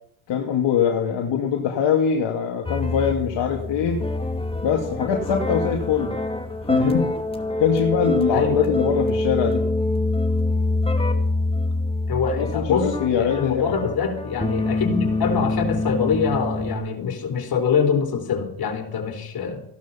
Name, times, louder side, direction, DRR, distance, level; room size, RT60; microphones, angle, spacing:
voice 1, 0.3-4.0 4.6-6.1 6.7-7.1 7.6-9.6 12.4-13.8, left 8 dB, 65° left, 1 dB, 2.3 m, -23 dB
sound 1, 2.6-16.7, left 2 dB, 10° left, 2.5 m, -25 dB
voice 2, 8.3-8.7 12.1-12.9 13.2-19.6, left 6 dB, 50° left, 3 dB, 4.2 m, -24 dB
15.5 x 11.5 x 5.7 m, 0.70 s
supercardioid pair, 80°, 46 cm